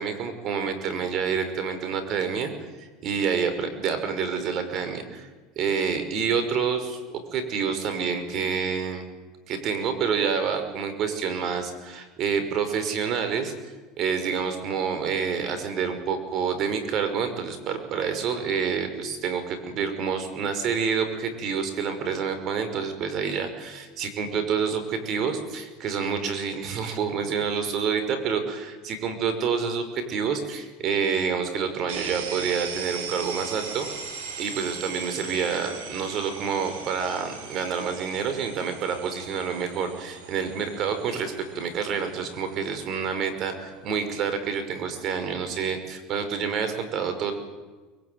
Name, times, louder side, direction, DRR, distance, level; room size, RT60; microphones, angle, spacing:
voice 1, 0.0-2.5 2.8-5.3 5.6-7.0 7.3-9.0 9.5-13.5 14.0-33.9 34.4-47.3, right 6 dB, 50° right, 9 dB, 5.4 m, -28 dB
sound 1, 31.9-45.6, right 6 dB, 75° right, 5.6 m, -40 dB
25.0 x 22.0 x 9.5 m, 1.3 s
hypercardioid pair, 90°, 0 cm